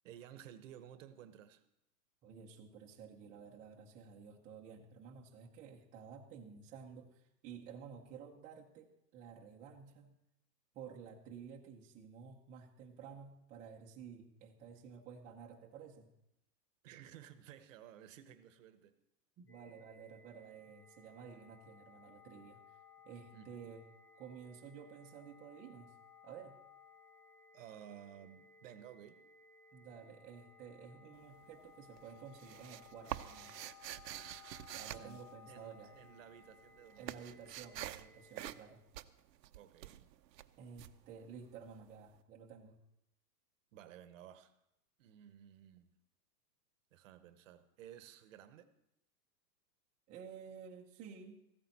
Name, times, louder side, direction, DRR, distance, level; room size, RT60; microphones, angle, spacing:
voice 1, 0.0-1.6 16.8-19.0 23.3-23.6 27.5-29.2 34.9-37.3 39.5-40.1 43.7-44.5 45.0-45.9 46.9-48.7, right 10 dB, 50° right, 1.0 m, -55 dB
voice 2, 2.2-10.1 10.7-16.1 19.4-22.8 23.0-23.9 24.1-26.0 26.2-26.6 29.7-33.6 34.7-35.9 37.0-38.8 40.6-42.8 50.1-51.4, right 6 dB, 15° right, 0.7 m, -52 dB
sound 1, 19.5-38.6, left 5 dB, 30° left, 1.0 m, -61 dB
sound 2, 31.1-31.7 32.0-36.0 36.3-41.9, right 13 dB, 80° right, 0.8 m, -47 dB
15.0 x 13.5 x 4.1 m
hypercardioid pair, 150°, 50 cm